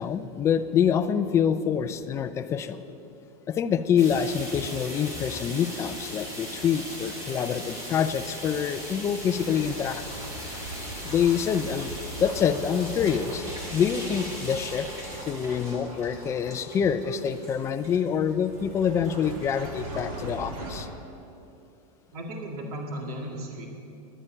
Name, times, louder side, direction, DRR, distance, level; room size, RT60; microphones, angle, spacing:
voice 1, 0.0-2.8 3.5-10.0 11.0-11.9 12.2-13.5 13.7-14.9 15.3-20.9, left 8 dB, 15° left, 11 dB, 0.4 m, -26 dB
sound 1, 4.0-20.8, equal, 15° right, 3.4 m, -40 dB
sound 2, 8.9-20.8, right 1 dB, 65° right, 2.7 m, -41 dB
voice 2, 22.1-23.7, right 1 dB, 85° right, 2 dB, 2.1 m, -35 dB
11.0 x 9.5 x 9.0 m, 2.7 s
supercardioid pair, 165°, 19 cm